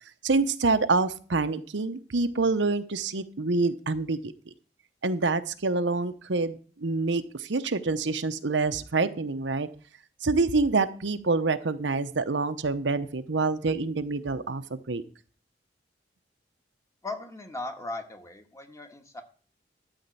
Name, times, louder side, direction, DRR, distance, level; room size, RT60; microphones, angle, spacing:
voice 1, 0.2-4.2 5.0-9.7 10.2-15.0, right 3 dB, 90° right, 11 dB, 0.8 m, -26 dB
voice 2, 17.0-19.2, left 2 dB, 20° left, 5 dB, 1.5 m, -38 dB
13.0 x 4.3 x 8.3 m, 0.42 s
head